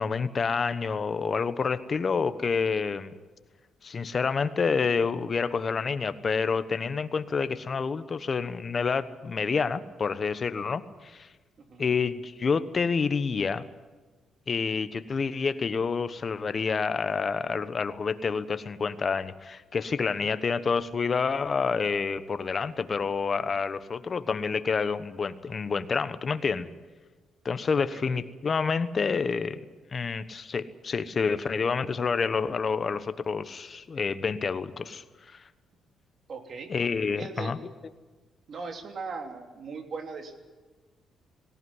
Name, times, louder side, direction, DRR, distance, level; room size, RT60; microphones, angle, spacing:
voice 1, 0.0-3.1 3.8-11.3 11.8-13.6 14.5-26.7 27.4-29.6 29.9-35.0 35.3-35.4 36.7-37.6, left 5 dB, 40° left, 12 dB, 1.1 m, -28 dB
voice 2, 27.8-28.1 36.3-36.7 37.2-37.6 38.5-40.4, right 4 dB, 50° right, 4 dB, 3.1 m, -38 dB
18.0 x 18.0 x 9.7 m, 1.3 s
cardioid pair, 90°, 0 cm